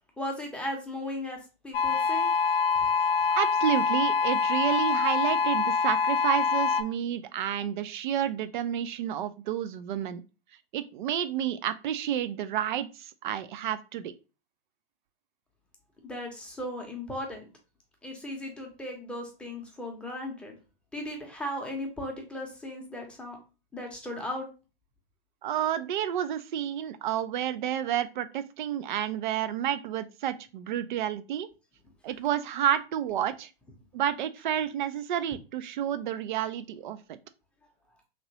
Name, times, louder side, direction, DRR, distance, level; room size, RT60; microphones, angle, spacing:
voice 1, 0.2-2.3 16.0-17.5 18.0-20.6 20.9-23.4 23.7-24.5, left 1 dB, 5° left, 1 dB, 0.7 m, -36 dB
sound 1, 1.7-6.8, left 5 dB, 70° left, 0.6 m, -25 dB
voice 2, 3.3-10.2 10.7-14.1 25.4-31.5 32.0-33.5 33.9-37.2, right 10 dB, 50° right, 13 dB, 0.5 m, -30 dB
3.0 x 2.9 x 2.8 m, 0.31 s
hypercardioid pair, 120°, 30 cm